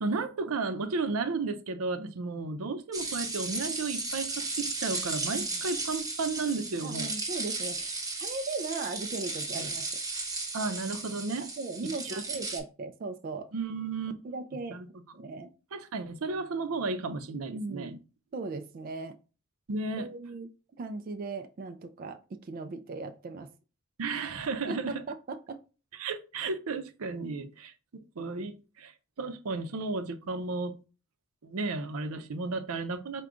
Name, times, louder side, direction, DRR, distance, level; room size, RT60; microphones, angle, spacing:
voice 1, 0.0-7.1 10.5-11.5 12.0-12.4 13.5-14.1 14.7-14.9 15.7-18.0 19.7-20.1 24.0-25.0 26.0-28.9 29.2-30.8 31.4-33.2, right 3 dB, 90° right, 0.6 m, -33 dB
sound 1, 2.9-12.6, right 3 dB, 15° right, 0.9 m, -35 dB
voice 2, 6.8-7.9 8.2-9.9 11.6-13.5 14.2-14.8 15.1-15.5 17.5-18.0 18.3-19.2 20.0-20.5 20.8-23.5 24.7-25.6, right 3 dB, 45° right, 0.3 m, -38 dB
4.8 x 2.2 x 3.7 m
head